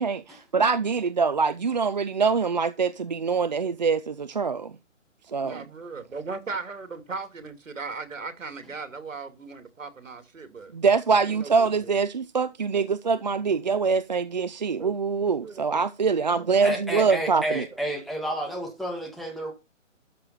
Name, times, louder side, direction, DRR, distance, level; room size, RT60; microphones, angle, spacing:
voice 1, 0.0-4.7 5.3-5.6 10.7-17.7, right 5 dB, 35° right, 0.4 m, -24 dB
voice 2, 5.4-10.7 11.2-11.9 14.8-15.8 16.2-16.5, right 4 dB, 80° right, 2.7 m, -38 dB
voice 3, 16.6-19.5, right 1 dB, ahead, 1.9 m, -30 dB
13.0 x 6.5 x 4.2 m
hypercardioid pair, 150°, 38 cm